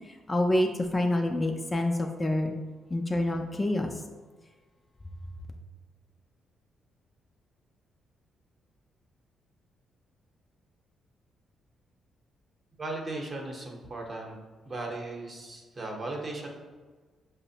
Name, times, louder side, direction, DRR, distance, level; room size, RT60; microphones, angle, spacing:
voice 1, 0.3-2.5 2.9-3.9, left 1 dB, 20° left, 3 dB, 0.3 m, -27 dB
voice 2, 12.8-14.4 14.6-16.5, right 2 dB, 35° right, 0 dB, 0.8 m, -37 dB
5.5 x 2.0 x 2.7 m, 1.4 s
cardioid pair, 80°, 0 cm